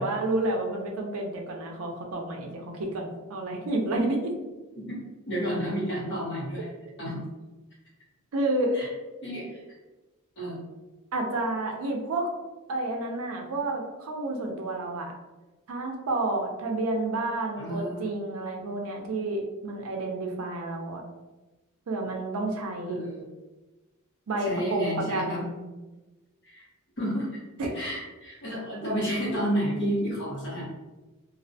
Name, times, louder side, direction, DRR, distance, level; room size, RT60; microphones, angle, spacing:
voice 1, 0.0-4.3 8.3-8.8 11.1-12.3 12.7-15.1 15.7-21.0 21.9-23.0 24.3-25.5 27.6-27.7, right 2 dB, 70° right, 2 dB, 0.4 m, -30 dB
voice 2, 5.3-6.7 7.0-7.2 8.7-8.9 9.2-9.6 10.4-10.6 17.6-18.1 22.9-23.3 24.4-25.4 26.4-26.6 27.0-27.4 27.7-30.7, equal, 55° left, -6 dB, 1.0 m, -31 dB
2.3 x 2.1 x 2.6 m, 1.1 s
head